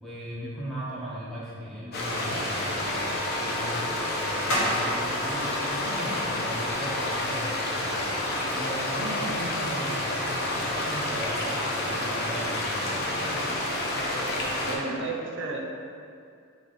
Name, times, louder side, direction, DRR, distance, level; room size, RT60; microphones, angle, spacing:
voice 1, 0.0-3.8 4.2-8.0 8.5-13.3, right 1 dB, ahead, -9 dB, 0.6 m, -38 dB
sound 1, 1.9-14.8, left 1 dB, 45° left, 0.5 m, -29 dB
sound 2, 2.8-10.9, equal, 80° left, 1.5 m, -37 dB
voice 2, 14.6-15.6, right 3 dB, 55° right, 0 dB, 0.5 m, -32 dB
3.3 x 3.1 x 3.9 m, 2.4 s
head